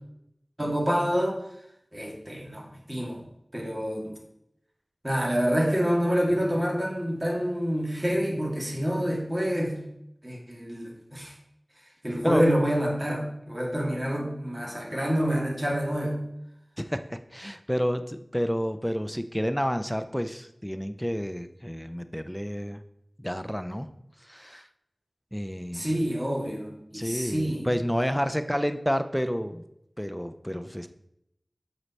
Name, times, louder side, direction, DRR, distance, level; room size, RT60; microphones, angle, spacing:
voice 1, 0.6-1.4 1.9-3.2 3.5-4.2 5.0-9.8 10.2-11.3 12.0-16.2 25.7-27.7, equal, 30° right, -1 dB, 2.0 m, -27 dB
voice 2, 16.8-22.8 23.2-23.9 24.2-24.6 25.3-25.9 26.9-29.7 30.0-30.9, equal, 5° left, 10 dB, 0.5 m, -30 dB
7.6 x 5.0 x 4.1 m, 0.79 s
wide cardioid pair, 40°, 0 cm